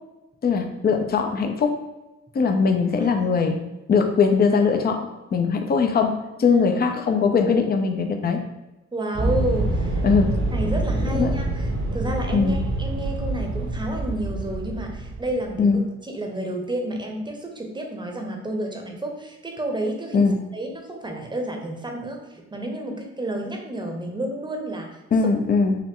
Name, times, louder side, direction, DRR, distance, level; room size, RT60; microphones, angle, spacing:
voice 1, 0.4-1.8 2.3-3.6 3.9-8.4 10.0-10.3 11.2-11.4 12.3-12.6 15.6-15.8 20.1-20.3 25.1-25.8, left 5 dB, 30° left, 5 dB, 0.6 m, -20 dB
voice 2, 8.9-10.0 10.5-25.3, right 1 dB, 15° right, 2 dB, 0.9 m, -30 dB
sound 1, 9.1-15.6, right 2 dB, 45° right, 1.0 m, -26 dB
5.7 x 2.1 x 3.6 m, 1.1 s
cardioid pair, 90°, 30 cm